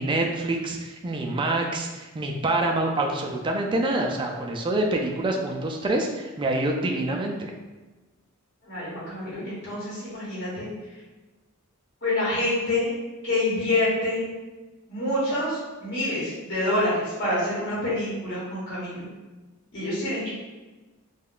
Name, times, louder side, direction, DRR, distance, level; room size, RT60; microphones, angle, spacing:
voice 1, 0.0-7.5, right 2 dB, 20° right, 1 dB, 0.3 m, -26 dB
voice 2, 8.6-10.7 12.0-12.9 13.2-14.2 14.9-19.1 19.7-20.3, left 1 dB, 55° left, -8 dB, 1.1 m, -27 dB
3.5 x 2.2 x 2.4 m, 1.2 s
head